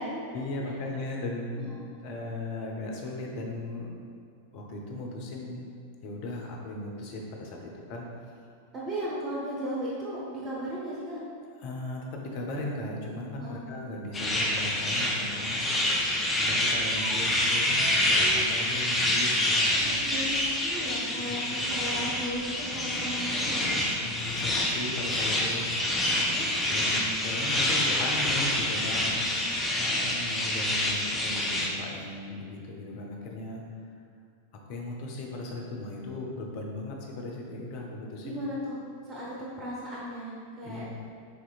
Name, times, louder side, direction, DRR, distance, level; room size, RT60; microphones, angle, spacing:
voice 1, 0.3-1.7 2.0-3.9 4.5-5.7 6.0-8.1 11.6-16.1 16.4-20.0 20.3-20.4 21.3-21.7 24.0-26.1 26.6-29.2 29.7-33.6 34.7-38.4 40.6-40.9, left 2 dB, 45° left, 0 dB, 0.7 m, -37 dB
voice 2, 8.7-11.2 13.3-13.6 19.8-23.8 26.3-26.5 29.3-29.4 38.2-38.8 39.1-40.9, equal, 30° right, -6 dB, 0.9 m, -36 dB
sound 1, 14.1-31.7, left 1 dB, 10° left, 0.6 m, -27 dB
sound 2, 16.7-20.7, right 4 dB, 50° right, 0.4 m, -45 dB
6.6 x 2.9 x 2.4 m, 2.2 s
figure-of-eight pair, 90°, 0 cm